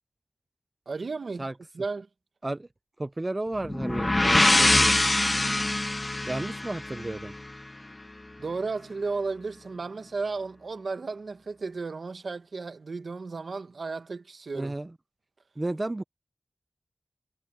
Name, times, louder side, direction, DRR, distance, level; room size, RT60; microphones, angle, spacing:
voice 1, 0.9-1.4 1.7-2.1 8.4-14.8, right 4 dB, 75° right, 1.1 m, -34 dB
voice 2, 3.0-4.9 6.3-7.3 14.5-14.9 15.6-16.0, right 2 dB, 30° right, 0.5 m, -33 dB
sound 1, 3.6-7.5, left 2 dB, 30° left, 0.4 m, -24 dB
wide cardioid pair, 75°, 0 cm